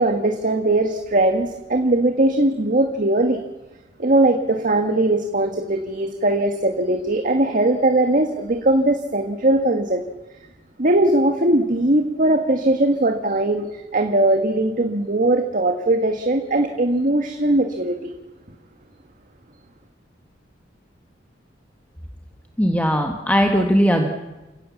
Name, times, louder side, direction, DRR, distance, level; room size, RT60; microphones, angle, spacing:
voice 1, 0.0-3.4 4.0-10.0 10.8-18.1, right 1 dB, 45° right, 5 dB, 1.6 m, -20 dB
voice 2, 22.6-24.1, equal, 10° left, 3 dB, 1.6 m, -18 dB
29.5 x 17.0 x 7.2 m, 1.1 s
head